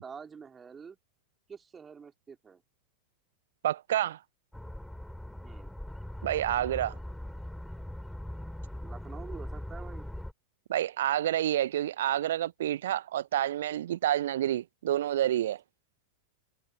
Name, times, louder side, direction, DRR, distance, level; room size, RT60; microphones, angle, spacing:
voice 1, 0.0-1.0 1.5-2.6 5.4-5.8 8.8-10.1, right 6 dB, 20° right, 3.7 m, -47 dB
voice 2, 3.6-4.2 6.2-7.0 10.7-15.6, right 12 dB, 60° right, 0.6 m, -28 dB
sound 1, 4.5-10.3, left 1 dB, ahead, 5.3 m, -41 dB
figure-of-eight pair, 90°, 0 cm